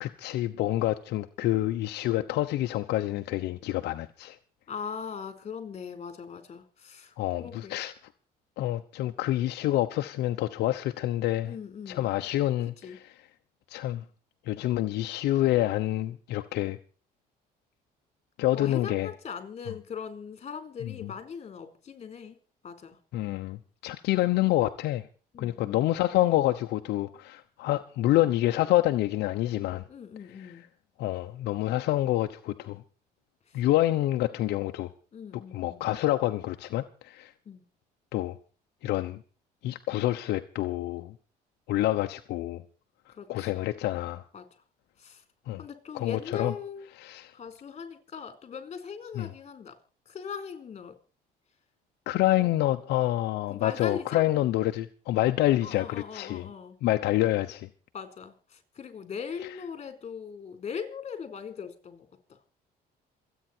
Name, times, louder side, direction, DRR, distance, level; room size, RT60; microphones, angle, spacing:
voice 1, 0.0-4.4 7.2-7.9 8.6-11.5 11.9-13.0 13.7-14.0 14.5-16.8 18.4-19.1 20.8-21.1 23.1-25.0 25.4-29.8 30.4-30.5 31.0-32.8 33.5-34.9 35.5-37.3 38.1-38.4 38.8-39.2 39.6-41.1 41.7-42.6 43.3-44.2 45.5-45.6 45.9-46.5 47.0-47.3 49.1-49.3 52.1-56.5 56.8-57.7, left 15 dB, 80° left, 1.0 m, -27 dB
voice 2, 4.7-7.1 7.4-7.8 11.4-12.1 12.8-13.0 18.5-22.4 22.6-23.0 25.3-25.9 29.9-30.7 33.5-33.6 35.1-35.9 37.5-37.6 43.2-43.6 44.3-44.4 45.0-45.2 45.6-46.9 47.3-49.8 50.1-50.9 52.3-52.5 53.5-54.2 55.6-56.8 57.9-62.1, left 6 dB, 40° left, 4.4 m, -40 dB
27.5 x 9.2 x 4.5 m
cardioid pair, 110°, 17 cm